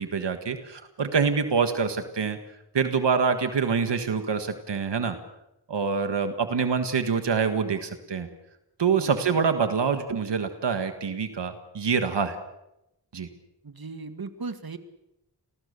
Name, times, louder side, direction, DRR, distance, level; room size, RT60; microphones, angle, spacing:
voice 1, 0.0-2.4 2.7-5.2 5.7-8.3 8.8-12.4 13.1-13.3, right 5 dB, 85° right, 8 dB, 1.7 m, -26 dB
voice 2, 13.6-14.8, right 4 dB, 60° right, 9 dB, 2.0 m, -37 dB
28.5 x 19.5 x 6.8 m, 0.88 s
cardioid pair, 50°, 41 cm